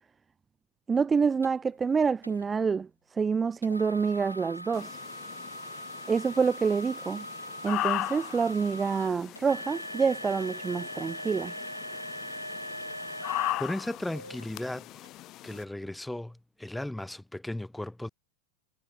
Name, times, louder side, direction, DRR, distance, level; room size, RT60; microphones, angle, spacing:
voice 1, 0.9-5.0 6.1-7.3 7.6-11.5, right 5 dB, 15° right, 0.8 m, -27 dB
sound 1, 1.4-1.5 2.2-2.5 3.6-14.5 15.0-15.1 15.7-15.9, equal, 90° right, 2.0 m, -41 dB
sound 2, 4.7-15.6, left 16 dB, 35° left, 1.8 m, -38 dB
voice 2, 13.6-15.1 15.4-18.1, left 1 dB, 5° left, 3.7 m, -36 dB
figure-of-eight pair, 90°, 0 cm